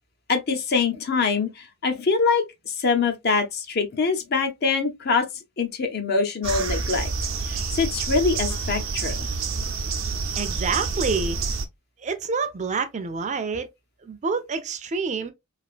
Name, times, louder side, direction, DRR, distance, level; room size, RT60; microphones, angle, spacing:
voice 1, 0.3-5.3 5.6-7.1 7.5-9.3, left 4 dB, 50° left, 0.7 m, -24 dB
sound 1, 6.4-11.7, right 4 dB, 85° right, 0.7 m, -28 dB
voice 2, 10.4-11.4 12.0-13.7 14.0-15.3, right 4 dB, 35° right, 0.5 m, -27 dB
3.3 x 2.5 x 2.4 m
head